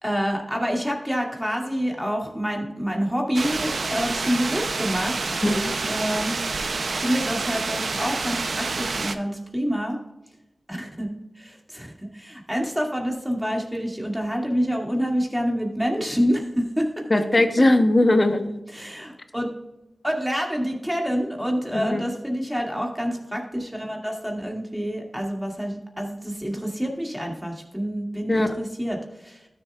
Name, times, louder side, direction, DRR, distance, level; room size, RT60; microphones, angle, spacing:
voice 1, 0.0-6.3 7.0-10.0 10.7-17.0 18.7-19.5 20.0-29.5, equal, 5° right, 1 dB, 2.1 m, -27 dB
sound 1, 3.3-9.1, right 3 dB, 75° right, 0.5 m, -28 dB
voice 2, 17.1-18.5 21.7-22.0 28.3-28.5, left 1 dB, 40° left, 8 dB, 0.9 m, -19 dB
12.5 x 7.0 x 2.4 m, 0.95 s
cardioid pair, 50°, 0 cm